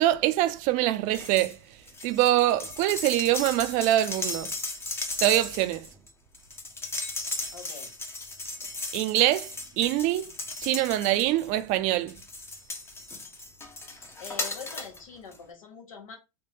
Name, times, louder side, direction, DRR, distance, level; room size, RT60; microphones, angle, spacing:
voice 1, 0.0-1.6 2.0-4.5 5.2-5.9 8.9-9.5 9.8-10.3 10.6-12.2, right 14 dB, 50° right, 0.4 m, -24 dB
sound 1, 1.1-1.6 1.9-11.6 12.1-15.0 15.3-15.4, left 2 dB, 15° left, 0.6 m, -36 dB
voice 2, 7.5-7.9 14.2-16.2, left 6 dB, 85° left, 1.1 m, -43 dB
3.3 x 2.2 x 3.1 m
hypercardioid pair, 90°, 17 cm